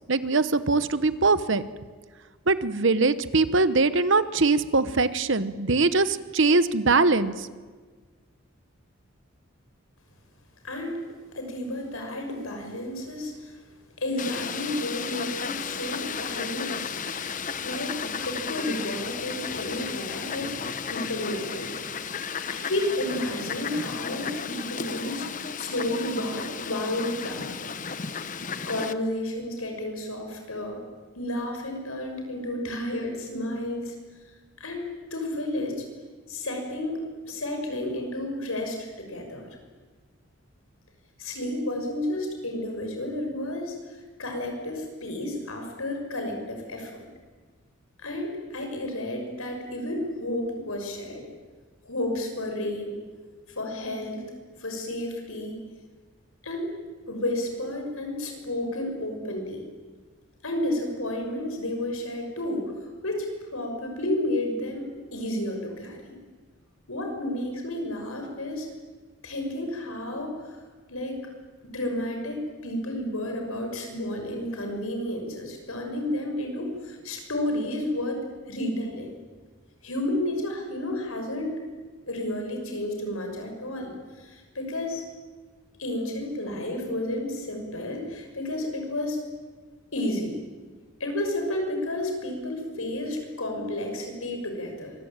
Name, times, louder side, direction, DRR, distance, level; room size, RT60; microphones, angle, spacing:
voice 1, 0.1-1.6 2.5-7.5, right 3 dB, 60° right, 14 dB, 1.0 m, -22 dB
voice 2, 10.6-11.0 11.3-13.5 14.0-17.0 17.6-18.0 18.2-21.7 22.5-27.6 28.7-30.8 31.1-33.9 34.6-35.8 36.3-37.0 37.2-39.5 41.2-43.7 44.2-47.0 48.0-51.3 51.8-53.0 53.5-54.2 54.6-55.5 56.4-56.7 57.1-59.6 60.4-62.7 63.0-63.3 63.5-66.2 66.9-68.7 69.2-70.5 70.9-71.2 71.7-79.1 79.8-81.6 82.1-85.1 85.8-89.2 89.9-90.4 91.0-94.9, left 1 dB, 85° left, 3 dB, 6.4 m, -31 dB
Fowl, 14.2-28.9, left 6 dB, 35° left, 0.9 m, -34 dB
25.0 x 22.0 x 9.0 m, 1.4 s
head